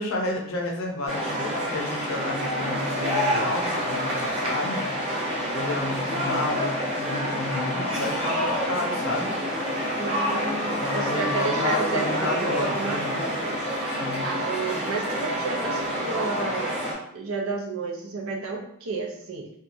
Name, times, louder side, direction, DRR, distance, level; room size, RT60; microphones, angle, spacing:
voice 1, 0.0-4.9 5.5-9.3 10.8-13.2 13.9-14.3, left 2 dB, 65° left, 0 dB, 0.6 m, -31 dB
sound 1, 1.1-16.9, equal, 30° right, 0.6 m, -27 dB
voice 2, 10.0-13.6 14.2-16.8 17.1-19.6, right 4 dB, 70° right, 0 dB, 0.5 m, -32 dB
2.8 x 2.3 x 2.5 m, 0.69 s
head